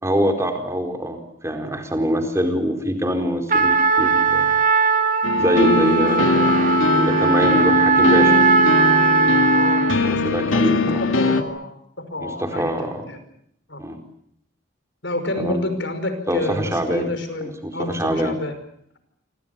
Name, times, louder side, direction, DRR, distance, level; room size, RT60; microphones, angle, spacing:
voice 1, 0.0-1.2 1.4-4.5 5.4-8.4 10.0-11.1 12.2-13.0 13.8-14.0 15.4-15.6 16.3-17.1 17.4-18.3, equal, 15° right, 5 dB, 4.4 m, -24 dB
Trumpet, 3.5-10.1, right 4 dB, 40° right, 2.8 m, -18 dB
sound 1, 5.2-11.4, left 3 dB, 80° left, 2.8 m, -20 dB
voice 2, 9.5-11.7 12.1-12.7 13.1-13.2 13.7-13.8 15.0-18.5, left 1 dB, 60° left, 9 dB, 5.4 m, -29 dB
27.5 x 25.5 x 6.9 m, 0.69 s
head